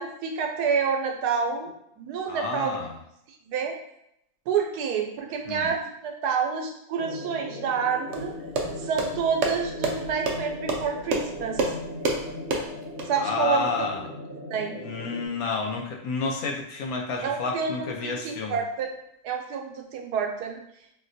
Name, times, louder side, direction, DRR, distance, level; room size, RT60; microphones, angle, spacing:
voice 1, 0.0-2.8 3.5-3.7 4.5-8.3 8.8-11.6 13.0-13.7 14.5-14.8 17.2-18.9 19.2-20.6, right 6 dB, 85° right, 3 dB, 1.2 m, -28 dB
voice 2, 2.3-3.0 5.5-5.7 13.2-14.0 14.8-18.6, left 4 dB, 75° left, 1 dB, 1.0 m, -30 dB
sound 1, 7.0-15.3, left 2 dB, 55° left, 0.6 m, -38 dB
sound 2, 8.1-13.1, right 3 dB, 70° right, 0.7 m, -29 dB
4.1 x 2.2 x 2.6 m, 0.78 s
omnidirectional pair, 1.7 m